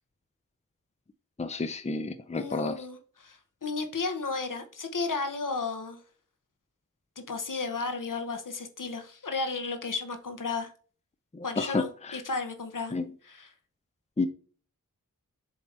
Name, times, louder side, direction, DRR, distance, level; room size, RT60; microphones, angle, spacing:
voice 1, 1.4-2.8 11.3-11.8 12.1-12.2 12.9-13.1 14.2-14.3, left 3 dB, 20° left, 0.6 m, -30 dB
voice 2, 2.3-6.0 7.3-10.7 11.4-12.9 13.2-13.5, left 4 dB, 65° left, 1.0 m, -33 dB
7.3 x 2.9 x 4.7 m
wide cardioid pair, 60°, 34 cm